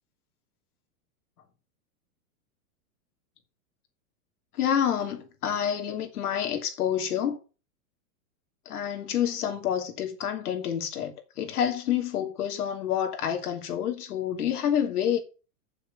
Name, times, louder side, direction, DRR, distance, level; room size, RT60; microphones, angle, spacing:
voice 1, 4.6-7.4 8.6-15.2, left 9 dB, 80° left, 3.0 m, -28 dB
7.6 x 7.1 x 6.9 m
supercardioid pair, 170°, 44 cm